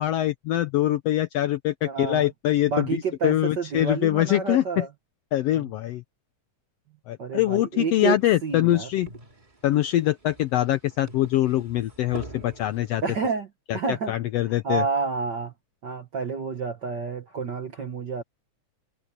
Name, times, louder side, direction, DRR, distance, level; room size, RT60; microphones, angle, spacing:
voice 1, 0.0-4.8 5.3-6.0 7.1-9.1 9.6-13.0 13.7-14.8, left 14 dB, 80° left, 1.4 m, -24 dB
voice 2, 1.8-2.3 2.6-4.9 5.5-5.6 7.2-8.9 13.0-14.1 14.6-15.5 15.8-18.2, right 5 dB, 55° right, 1.3 m, -29 dB
sound 1, 8.1-13.1, right 3 dB, 15° right, 1.9 m, -46 dB
omnidirectional pair, 3.5 m